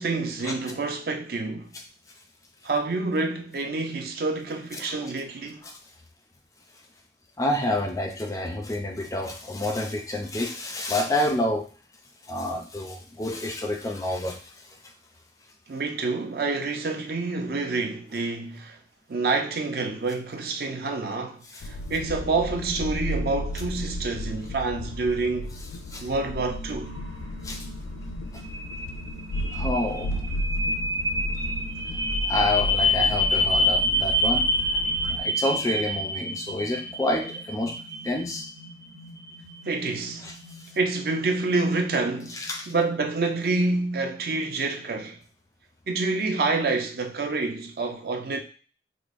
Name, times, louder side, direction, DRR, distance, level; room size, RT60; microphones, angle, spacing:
voice 1, 0.0-1.7 2.6-5.6 15.7-18.8 19.1-25.6 26.0-26.9 39.6-40.2 40.8-42.4 42.7-45.2 45.9-48.4, right 3 dB, 55° right, 0.5 m, -27 dB
voice 2, 4.7-5.1 5.6-5.8 7.4-11.7 12.2-14.9 21.5-21.6 25.9-26.0 27.4-27.7 28.3-28.4 29.3-30.3 31.4-31.5 32.2-34.5 35.0-38.5 40.2-40.7 42.3-42.7, left 1 dB, 20° left, 0.4 m, -29 dB
sound 1, 21.6-35.2, left 1 dB, 90° left, 0.3 m, -33 dB
sound 2, 26.3-44.0, left 1 dB, 85° right, 0.9 m, -29 dB
5.0 x 2.0 x 2.4 m
head